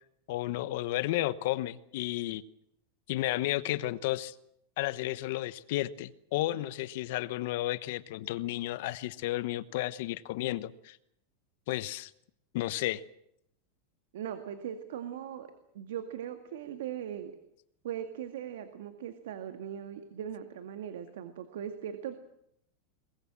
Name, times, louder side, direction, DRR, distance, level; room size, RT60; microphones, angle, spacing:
voice 1, 0.3-2.4 3.1-4.3 4.8-11.0 11.7-12.1 12.5-13.0, left 16 dB, 60° left, 15 dB, 1.1 m, -32 dB
voice 2, 14.1-15.5 15.7-17.3 17.8-22.1, right 9 dB, 80° right, 8 dB, 2.0 m, -39 dB
23.0 x 19.5 x 7.5 m, 0.76 s
supercardioid pair, 155°, 0 cm